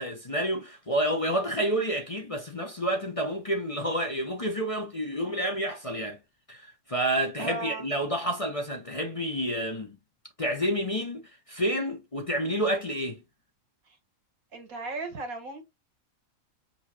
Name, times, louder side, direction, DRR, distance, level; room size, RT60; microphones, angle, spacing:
voice 1, 0.0-6.2 6.5-10.0 10.4-13.2, right 1 dB, 30° left, 0.8 m, -29 dB
voice 2, 7.4-7.9 14.5-15.6, right 3 dB, 80° right, 2.0 m, -36 dB
5.3 x 2.9 x 2.7 m
omnidirectional pair, 1.5 m